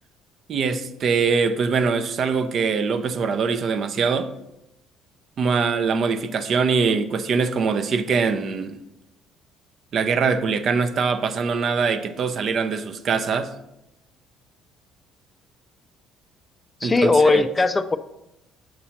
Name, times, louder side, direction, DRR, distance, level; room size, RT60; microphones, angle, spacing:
voice 1, 0.5-4.3 5.4-8.8 9.9-13.5 16.8-17.4, right 5 dB, 50° right, 0.5 m, -23 dB
voice 2, 16.8-18.0, left 3 dB, 20° left, 0.3 m, -18 dB
7.3 x 2.8 x 5.7 m
cardioid pair, 110°, 0 cm